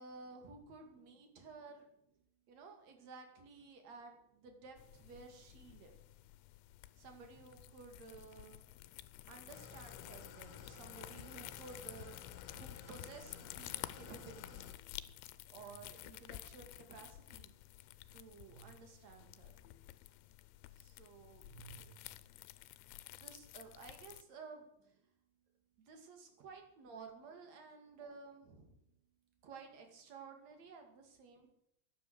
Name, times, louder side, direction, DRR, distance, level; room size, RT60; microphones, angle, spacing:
voice 1, 0.0-1.9 2.5-5.9 7.0-8.6 9.3-12.2 12.5-14.7 15.5-17.5 18.1-19.5 20.8-21.5 21.8-22.2 22.9-24.7 25.8-28.7 29.4-31.5, right 4 dB, 45° right, 4 dB, 2.9 m, -54 dB
sound 1, 4.8-24.2, left 16 dB, 85° left, 3.0 m, -52 dB
Engine starting / Idling, 9.5-14.8, left 6 dB, 70° left, 3.0 m, -54 dB
voice 2, 17.6-18.2 18.5-18.8 19.6-23.1 25.1-25.9 28.8-29.4, right 8 dB, 85° right, 1 dB, 4.3 m, -64 dB
12.0 x 10.0 x 8.1 m, 0.74 s
omnidirectional pair, 5.1 m